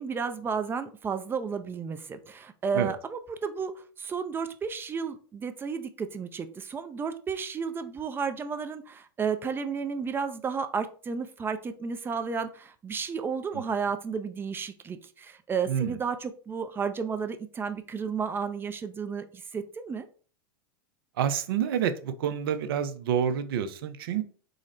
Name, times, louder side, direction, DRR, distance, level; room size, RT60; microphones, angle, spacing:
voice 1, 0.0-20.1, right 5 dB, 20° right, 9 dB, 0.4 m, -32 dB
voice 2, 21.2-24.2, right 8 dB, 70° right, 11 dB, 0.5 m, -28 dB
3.8 x 2.1 x 3.7 m, 0.41 s
hypercardioid pair, 110°, 13 cm